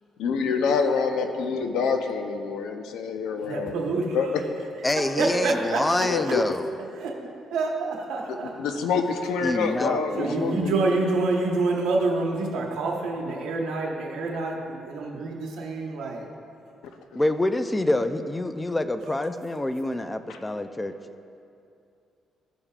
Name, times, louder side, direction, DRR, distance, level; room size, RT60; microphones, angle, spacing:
voice 1, 0.2-3.7 4.1-4.3 6.0-6.5 8.6-10.9 20.3-20.4, left 5 dB, 85° left, 6 dB, 0.6 m, -26 dB
voice 2, 3.4-4.2 5.2-5.8 6.3-6.4 7.0-7.2 7.5-8.5 10.2-16.3, right 3 dB, 85° right, 0 dB, 1.2 m, -27 dB
voice 3, 4.8-6.7 9.4-10.7 17.1-21.0, left 1 dB, 15° left, 9 dB, 0.4 m, -26 dB
14.5 x 5.4 x 2.4 m, 2.6 s
cardioid pair, 90°, 0 cm